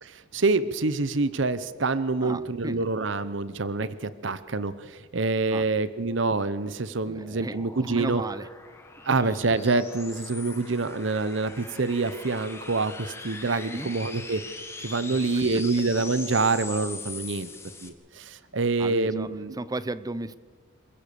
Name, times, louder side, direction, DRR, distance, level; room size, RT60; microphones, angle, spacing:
voice 1, 0.0-8.2 9.1-14.4 14.8-17.5 17.8-19.6, right 3 dB, 65° right, 14 dB, 0.9 m, -26 dB
voice 2, 2.2-2.9 5.5-5.7 7.1-8.5 13.7-13.9 15.3-15.6 18.8-19.3 19.6-20.3, right 2 dB, 20° right, 16 dB, 0.6 m, -35 dB
sound 1, 6.6-17.9, left 3 dB, 15° left, 1.6 m, -42 dB
27.0 x 15.5 x 7.0 m, 1.5 s
head